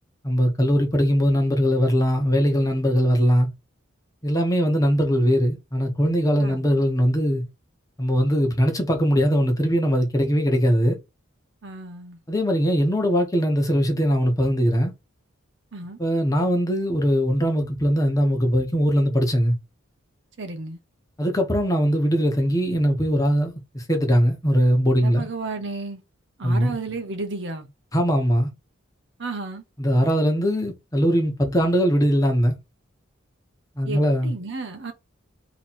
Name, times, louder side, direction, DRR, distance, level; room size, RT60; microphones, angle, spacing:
voice 1, 0.2-3.5 4.2-7.4 8.0-11.0 12.3-14.9 16.0-19.5 21.2-25.3 26.4-26.7 27.9-28.5 29.8-32.6 33.8-34.3, equal, 15° left, 1.0 m, -21 dB
voice 2, 11.6-12.2 15.7-16.0 20.4-20.8 25.0-26.0 26.4-27.7 29.2-29.6 33.8-34.9, right 3 dB, 60° right, 0.7 m, -33 dB
3.1 x 3.0 x 4.2 m
head